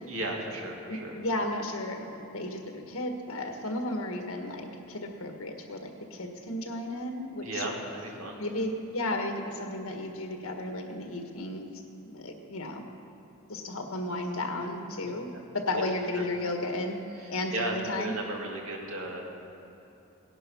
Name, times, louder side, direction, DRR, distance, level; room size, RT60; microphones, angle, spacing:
voice 1, 0.1-1.1 7.4-8.4 15.0-15.1 15.7-15.9 16.2-16.3 17.1-19.2, right 2 dB, 80° right, 0 dB, 2.1 m, -35 dB
voice 2, 0.9-7.6 8.4-11.7 12.1-12.9 13.5-17.0 17.3-18.1, left 1 dB, 85° left, 3 dB, 1.6 m, -34 dB
17.5 x 11.0 x 5.5 m, 2.9 s
head